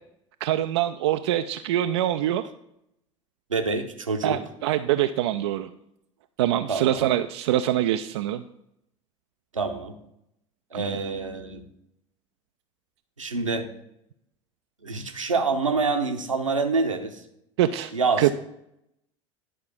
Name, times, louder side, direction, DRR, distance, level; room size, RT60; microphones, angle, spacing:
voice 1, 0.4-2.5 4.2-5.7 6.4-8.4 10.7-11.0 17.6-17.9 18.2-18.3, right 12 dB, 60° right, 8 dB, 0.4 m, -24 dB
voice 2, 3.5-4.4 6.7-7.0 9.5-10.0 10.7-11.7 13.2-13.7 14.8-17.2 17.9-18.3, right 4 dB, 80° right, 6 dB, 0.9 m, -26 dB
10.0 x 4.7 x 6.9 m, 0.80 s
figure-of-eight pair, 75°, 16 cm